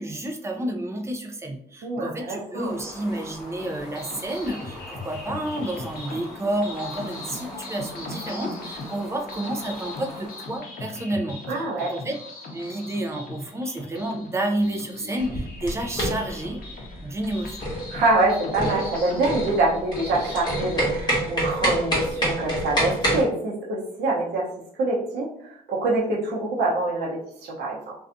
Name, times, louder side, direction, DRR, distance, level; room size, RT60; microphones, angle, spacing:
voice 1, 0.0-12.2 12.5-16.6 17.0-17.6, right 1 dB, 15° right, 3 dB, 0.4 m, -30 dB
voice 2, 1.8-2.7 11.5-11.9 17.9-24.5 24.8-27.9, right 2 dB, 85° right, -4 dB, 0.7 m, -25 dB
Fowl, 2.6-10.6, left 1 dB, ahead, 1.2 m, -42 dB
sound 1, 3.6-20.8, left 3 dB, 65° left, 0.7 m, -39 dB
sound 2, 15.2-23.2, right 1 dB, 25° left, 1.1 m, -27 dB
2.5 x 2.3 x 2.5 m, 0.71 s
cardioid pair, 115°, 17 cm